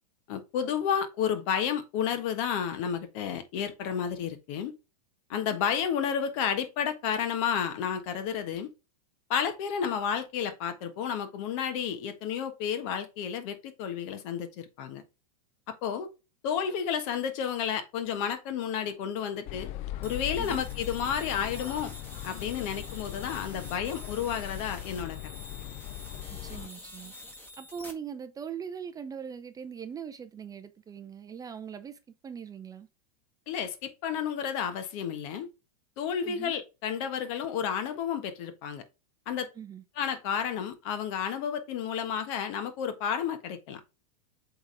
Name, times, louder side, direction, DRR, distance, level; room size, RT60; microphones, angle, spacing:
voice 1, 0.3-4.7 5.3-8.7 9.3-15.0 15.8-16.1 16.4-19.7 20.0-21.9 22.2-25.3 33.5-35.5 36.0-38.8 39.3-39.5 39.9-43.8, left 8 dB, 55° left, 1.5 m, -31 dB
sound 1, 19.5-26.7, left 14 dB, 35° left, 0.4 m, -39 dB
sound 2, 20.0-27.9, left 1 dB, 10° left, 1.8 m, -47 dB
voice 2, 26.3-27.1 27.6-32.9 36.3-36.5 39.6-39.8, right 7 dB, 20° right, 0.5 m, -41 dB
7.9 x 3.7 x 3.4 m
hypercardioid pair, 110°, 19 cm